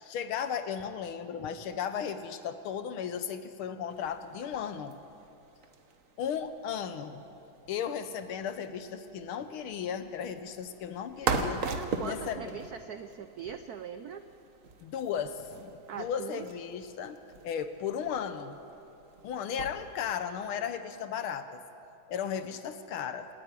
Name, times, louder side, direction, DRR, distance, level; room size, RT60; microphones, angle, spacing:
voice 1, 0.0-5.0 6.2-7.2 7.7-11.7 12.1-12.6 14.8-15.7 16.0-17.2 17.4-18.6 19.2-21.6 22.1-23.3, left 8 dB, 75° left, 10 dB, 1.7 m, -35 dB
sound 1, 3.9-20.2, right 4 dB, 45° right, 1.3 m, -41 dB
voice 2, 11.6-14.3 15.9-16.5, right 7 dB, 75° right, 9 dB, 0.8 m, -41 dB
27.5 x 9.8 x 9.7 m, 2.8 s
omnidirectional pair, 2.4 m